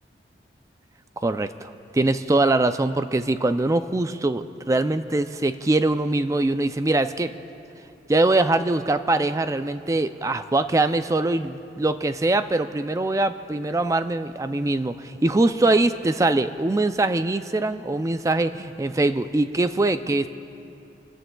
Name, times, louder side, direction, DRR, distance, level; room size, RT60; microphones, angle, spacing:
voice 1, 1.2-7.3 8.1-20.3, right 2 dB, 20° right, 10 dB, 0.3 m, -23 dB
29.0 x 14.0 x 2.3 m, 2.7 s
head